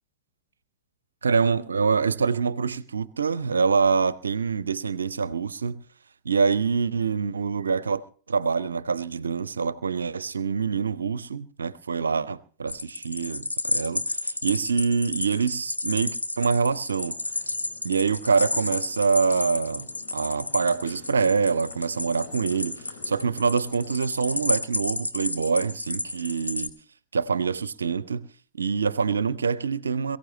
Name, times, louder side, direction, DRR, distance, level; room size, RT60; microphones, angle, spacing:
voice 1, 1.2-5.8 6.2-8.0 8.3-17.2 17.8-26.7 27.1-28.3 28.5-30.2, right 5 dB, 75° right, 0.6 m, -25 dB
sound 1, 12.7-26.7, left 2 dB, 85° left, 1.0 m, -31 dB
Motorcycle, 16.8-24.0, left 4 dB, 65° left, 4.4 m, -50 dB
22.5 x 14.5 x 3.0 m
figure-of-eight pair, 90°, 0 cm